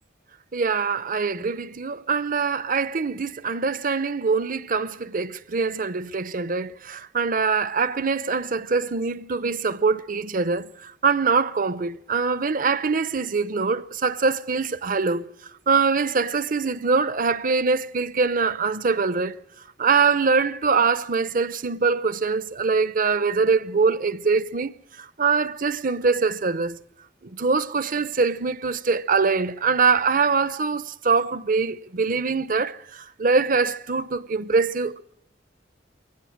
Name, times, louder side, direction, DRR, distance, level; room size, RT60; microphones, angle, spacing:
voice 1, 0.5-15.3 15.7-19.3 19.8-26.8 27.2-35.0, right 4 dB, 45° right, 0.8 m, -23 dB
23.5 x 17.5 x 7.3 m
head